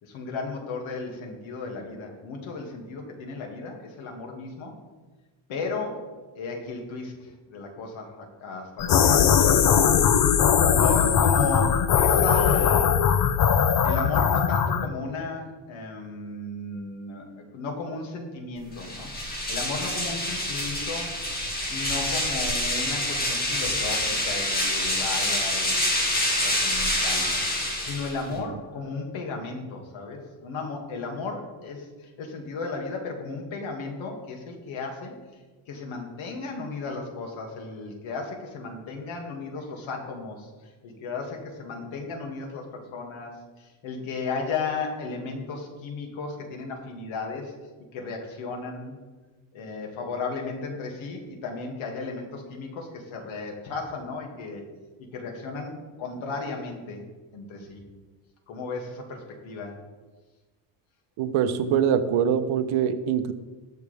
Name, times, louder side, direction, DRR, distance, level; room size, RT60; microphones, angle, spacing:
voice 1, 0.0-4.7 5.5-6.1 6.3-9.8 10.7-13.0 13.8-19.1 19.5-21.1 21.7-35.2 35.7-47.5 47.9-49.0 49.5-54.6 55.0-57.1 57.3-57.8 58.5-59.8, left 3 dB, 80° left, 1 dB, 2.5 m, -35 dB
sound 1, 8.8-14.9, left 7 dB, 45° left, 0.7 m, -20 dB
sound 2, 18.7-28.4, left 1 dB, 20° left, 2.1 m, -27 dB
voice 2, 61.2-63.3, right 8 dB, 90° right, 10 dB, 1.0 m, -23 dB
20.0 x 6.8 x 3.5 m, 1.3 s
cardioid pair, 175°, 47 cm